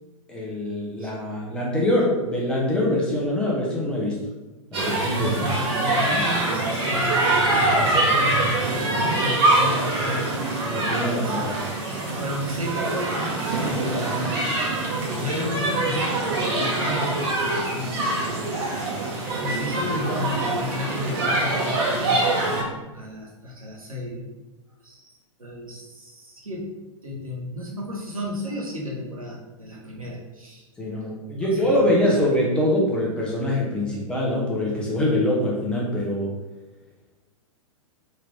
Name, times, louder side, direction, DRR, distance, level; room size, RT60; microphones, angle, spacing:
voice 1, 0.3-4.2 4.7-5.5 6.1-6.2 10.7-11.6 30.8-36.3, left 1 dB, 5° left, -4 dB, 1.0 m, -24 dB
sound 1, 4.7-22.6, right 2 dB, 45° right, 1.1 m, -24 dB
voice 2, 5.3-10.6 11.2-11.5 12.1-16.2 16.5-18.9 19.4-24.3 24.8-26.7 27.0-30.7 30.9-31.0 31.4-32.2, left 1 dB, 85° right, -3 dB, 1.1 m, -33 dB
3.8 x 2.9 x 3.3 m, 1.1 s
figure-of-eight pair, 105°, 18 cm